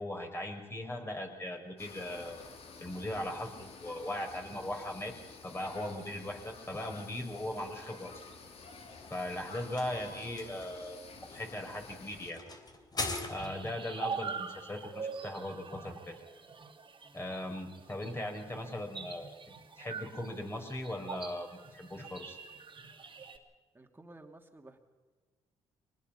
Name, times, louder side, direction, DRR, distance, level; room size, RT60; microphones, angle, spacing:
voice 1, 0.0-2.4 2.8-5.1 5.4-8.2 9.1-11.0 11.3-12.4 13.3-16.1 17.1-19.3 19.7-22.4, left 1 dB, 20° left, 3 dB, 4.8 m, -39 dB
sound 1, 1.8-12.3, left 4 dB, 65° left, 2.7 m, -51 dB
sound 2, 8.7-13.8, left 3 dB, 40° left, 3.2 m, -42 dB
sound 3, 13.4-23.4, right 5 dB, 50° right, 2.6 m, -44 dB
voice 2, 17.0-17.3 23.7-24.8, right 2 dB, 20° right, 4 dB, 2.8 m, -54 dB
24.0 x 19.5 x 5.7 m, 1.4 s
cardioid pair, 70°, 11 cm